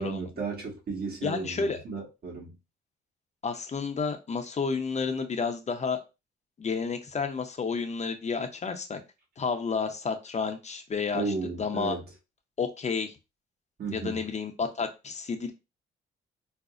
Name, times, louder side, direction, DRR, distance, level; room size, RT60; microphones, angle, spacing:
voice 1, 0.0-2.5 11.1-12.1 13.8-14.3, right 4 dB, 50° right, 1.5 m, -34 dB
voice 2, 1.2-1.8 3.4-6.0 6.6-9.0 9.4-11.9 12.6-13.1 13.9-15.5, left 5 dB, 35° left, 0.6 m, -31 dB
5.0 x 2.0 x 2.4 m
cardioid pair, 90°, 20 cm